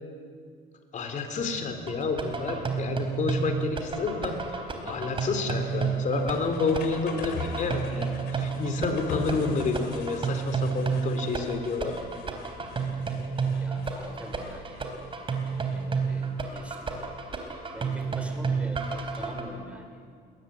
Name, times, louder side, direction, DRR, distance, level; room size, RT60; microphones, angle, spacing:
voice 1, 0.9-12.0, left 4 dB, 50° left, 6 dB, 3.7 m, -29 dB
sound 1, 1.4-19.3, left 5 dB, 75° left, 3.6 m, -44 dB
sound 2, 1.9-19.4, right 5 dB, 30° right, 3.9 m, -31 dB
voice 2, 13.5-14.9 15.5-17.1 17.7-19.9, right 1 dB, 5° right, 4 dB, 4.3 m, -44 dB
21.5 x 19.5 x 9.6 m, 2.2 s
cardioid pair, 110°, 17 cm